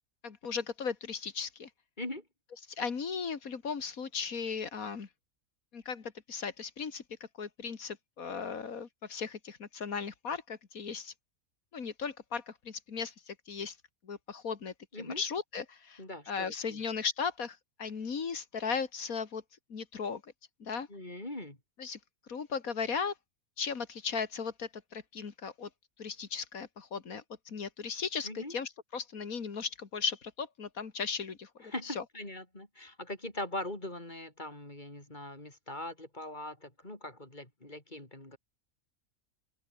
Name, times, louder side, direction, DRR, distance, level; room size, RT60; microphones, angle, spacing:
voice 1, 0.2-1.7 2.8-5.1 5.7-7.0 7.4-11.1 11.7-13.8 14.0-19.4 19.7-20.3 20.6-20.9 21.8-22.0 22.3-23.1 23.6-25.7 26.0-32.0, left 5 dB, 75° left, 2.4 m, -37 dB
voice 2, 16.0-16.8 20.9-21.6 28.2-28.5 31.6-38.4, left 1 dB, 30° left, 4.8 m, -41 dB
omnidirectional pair, 1.5 m